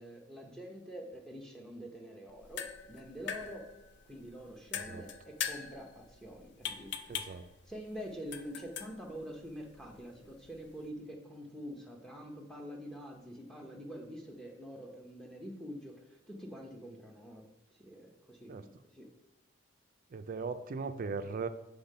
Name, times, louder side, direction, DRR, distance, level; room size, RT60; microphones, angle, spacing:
voice 1, 0.0-3.7 4.0-17.4 17.7-19.1, equal, 5° left, 0 dB, 0.8 m, -46 dB
sound 1, 2.3-10.9, left 8 dB, 55° left, 0.4 m, -44 dB
voice 2, 7.1-7.4 18.5-18.6 20.1-21.5, right 4 dB, 45° right, 10 dB, 0.4 m, -38 dB
5.6 x 3.6 x 5.4 m, 0.90 s
head